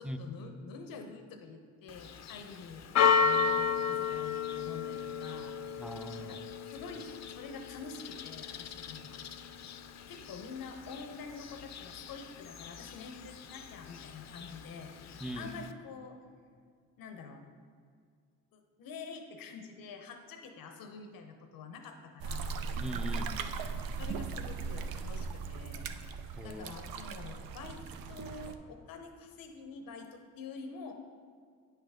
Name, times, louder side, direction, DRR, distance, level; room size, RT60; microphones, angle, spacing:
voice 1, 0.0-5.6 6.2-6.4 6.7-9.2 10.1-15.0 15.3-16.2 17.0-17.5 18.5-22.5 24.0-25.9 26.4-27.8 28.1-30.9, left 4 dB, 80° left, 5 dB, 0.7 m, -47 dB
Church bell, 1.9-15.7, left 6 dB, 50° left, 0.5 m, -34 dB
voice 2, 5.8-6.4 15.2-15.6 22.8-23.4 26.4-26.7, right 1 dB, 5° right, 6 dB, 0.4 m, -40 dB
sound 1, 22.2-28.5, right 5 dB, 90° right, 0.5 m, -38 dB
9.1 x 5.9 x 3.4 m, 2.1 s
cardioid pair, 75°, 34 cm